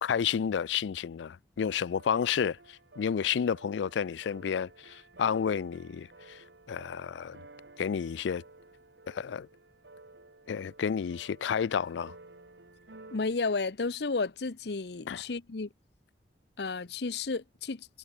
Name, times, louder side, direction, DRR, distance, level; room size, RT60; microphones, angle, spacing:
voice 1, 0.0-6.4 6.7-7.4 7.8-8.4 9.1-9.5 10.5-12.1 15.1-15.2, left 7 dB, 90° left, 0.4 m, -31 dB
sound 1, 1.7-13.2, right 2 dB, 80° right, 2.0 m, -54 dB
voice 2, 13.1-15.7 16.6-17.9, left 4 dB, 70° left, 0.8 m, -32 dB
head